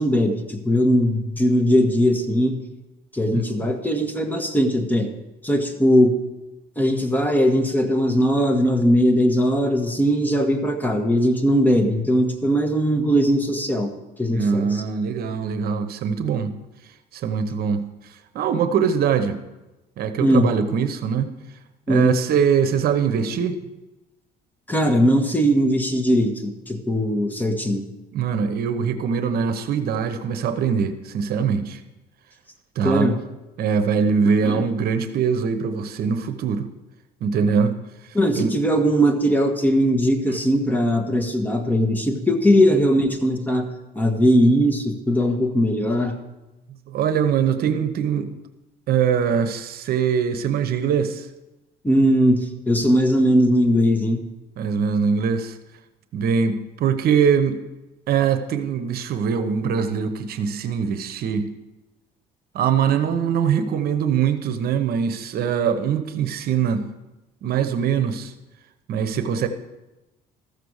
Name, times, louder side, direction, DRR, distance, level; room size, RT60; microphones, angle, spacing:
voice 1, 0.0-2.6 3.1-5.1 5.4-6.2 6.8-14.8 20.2-20.5 21.9-22.2 24.7-27.9 32.8-33.2 34.4-34.7 38.1-46.2 51.8-54.3, equal, 10° left, 4 dB, 1.3 m, -20 dB
voice 2, 3.3-3.7 14.3-16.5 17.1-17.8 18.3-19.4 20.0-21.3 21.9-23.6 28.1-31.8 32.8-33.1 33.6-36.7 37.2-37.7 38.3-38.5 46.9-48.3 48.9-51.3 54.6-55.6 56.1-57.6 58.1-61.5 62.5-66.8 67.4-68.3 68.9-69.5, right 7 dB, 65° right, 10 dB, 0.9 m, -22 dB
14.0 x 6.8 x 6.4 m, 1.0 s
cardioid pair, 110°, 17 cm